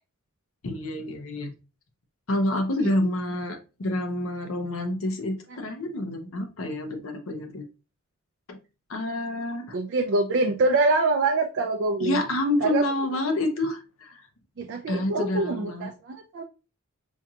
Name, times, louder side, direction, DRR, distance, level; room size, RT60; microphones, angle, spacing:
voice 1, 0.6-1.5 2.3-7.6 8.5-8.6 8.9-9.8 12.0-14.2 14.9-15.9, left 1 dB, 70° left, 4 dB, 0.8 m, -28 dB
voice 2, 9.7-12.2 12.6-12.8 14.6-16.4, right 3 dB, 55° right, 4 dB, 0.4 m, -25 dB
4.4 x 2.8 x 2.3 m, 0.31 s
head